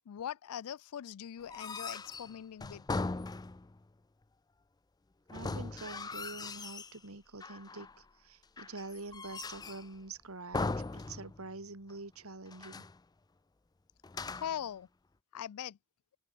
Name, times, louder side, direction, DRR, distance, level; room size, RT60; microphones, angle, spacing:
voice 1, 0.1-2.8 14.3-14.9 15.3-15.8, left 9 dB, 80° left, 0.4 m, -41 dB
sound 1, 1.4-3.8 5.3-7.0 7.4-8.0 8.6-10.0 10.5-11.6 11.9-12.0 12.5-13.0 14.0-14.7, left 3 dB, 20° left, 0.4 m, -39 dB
voice 2, 5.3-12.8, right 3 dB, 70° right, 2.4 m, -46 dB
open air
head